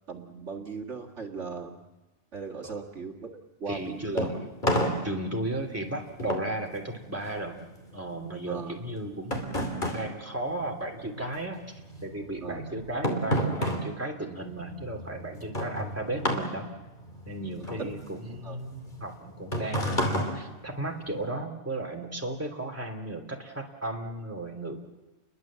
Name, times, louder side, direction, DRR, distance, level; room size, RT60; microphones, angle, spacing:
voice 1, 0.1-1.8 2.3-3.3 3.6-4.3 8.5-8.7 12.4-12.6 17.6-17.9 18.4-18.6, right 5 dB, 65° right, 2 dB, 2.2 m, -37 dB
sound 1, 3.7-11.3 11.6-21.3, equal, 40° left, 3.3 m, -32 dB
voice 2, 3.7-4.5 5.0-7.6 7.9-11.7 12.0-16.7 17.3-24.8, right 1 dB, 10° right, 1 dB, 2.9 m, -35 dB
30.0 x 22.5 x 7.5 m, 1.1 s
omnidirectional pair, 1.3 m